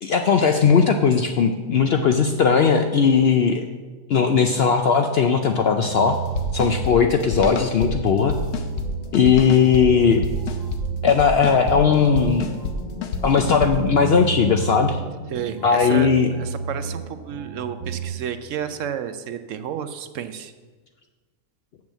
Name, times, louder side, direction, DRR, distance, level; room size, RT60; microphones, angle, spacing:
voice 1, 0.0-3.6 4.1-6.2 6.5-8.4 9.1-10.2 11.0-12.5 13.2-15.0 15.6-16.3, left 6 dB, 65° left, 6 dB, 0.6 m, -18 dB
sound 1, 5.9-18.1, right 6 dB, 45° right, 0.6 m, -32 dB
sound 2, 6.4-7.9 8.3-8.9 9.1-9.8 10.2-10.8 11.1-11.8 12.2-12.8 13.0-13.7, left 5 dB, 85° left, 1.2 m, -28 dB
sound 3, 11.1-15.5, left 2 dB, 10° right, 0.3 m, -38 dB
voice 2, 15.3-16.1 16.4-20.5, right 9 dB, 70° right, 10 dB, 0.9 m, -31 dB
7.1 x 6.2 x 7.3 m, 1.3 s
omnidirectional pair, 1.5 m